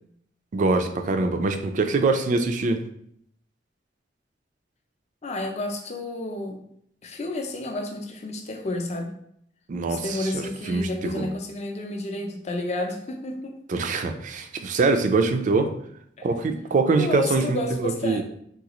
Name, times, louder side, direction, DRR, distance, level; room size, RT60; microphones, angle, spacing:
voice 1, 0.5-2.8 9.7-10.4 10.7-11.3 13.7-15.7 16.2-18.2, right 3 dB, 45° right, 6 dB, 0.3 m, -23 dB
voice 2, 5.2-6.6 7.0-9.1 9.9-13.6 16.2-16.3 16.9-18.2, left 2 dB, 40° left, 3 dB, 0.5 m, -31 dB
3.7 x 2.4 x 2.9 m, 0.69 s
head